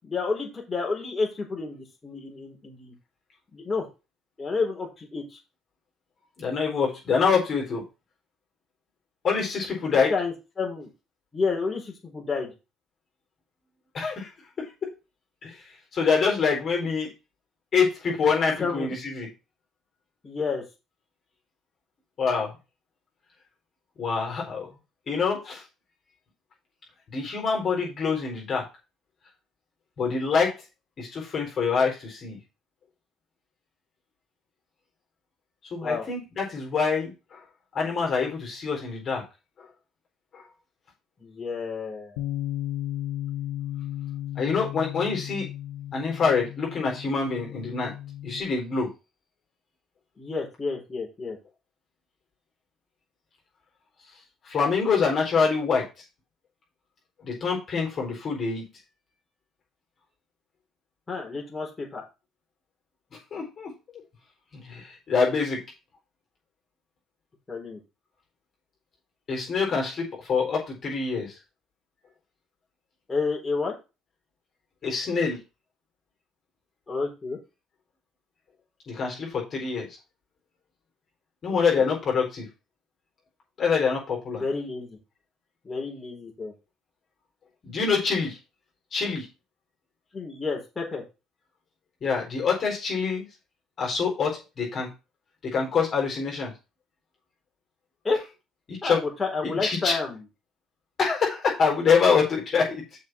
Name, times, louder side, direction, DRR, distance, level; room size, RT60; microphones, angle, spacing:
voice 1, 0.0-2.9 3.5-3.9 4.4-5.4 9.9-10.9 11.3-12.5 18.6-18.9 20.2-20.6 35.8-36.1 41.2-42.2 50.2-51.4 61.1-62.0 67.5-67.8 73.1-73.7 76.9-77.4 81.7-81.9 84.3-85.0 85.6-86.5 90.1-91.0 98.0-98.2 98.8-100.2, left 4 dB, 25° left, 0 dB, 4.4 m, -30 dB
voice 2, 6.4-7.8 9.2-10.1 13.9-14.3 14.6-14.9 15.4-15.6 15.9-17.1 17.7-19.3 22.2-22.5 24.0-24.7 25.1-25.6 27.1-28.7 30.0-30.5 31.0-32.4 35.7-37.4 37.7-39.2 40.3-40.4 44.4-45.5 45.9-47.9 48.2-48.9 54.5-55.9 57.2-58.6 63.3-63.7 64.5-65.6 69.3-71.3 74.8-75.4 78.9-79.9 81.4-82.5 83.6-84.4 87.6-88.4 88.9-89.3 92.0-93.3 93.8-94.9 95.4-96.5 98.7-99.0 99.4-100.0 101.0-102.8, left 5 dB, 45° left, -1 dB, 4.3 m, -25 dB
Bass guitar, 42.2-48.4, left 12 dB, 80° left, 1.0 m, -34 dB
6.5 x 5.5 x 6.0 m, 0.28 s
supercardioid pair, 70°, 0 cm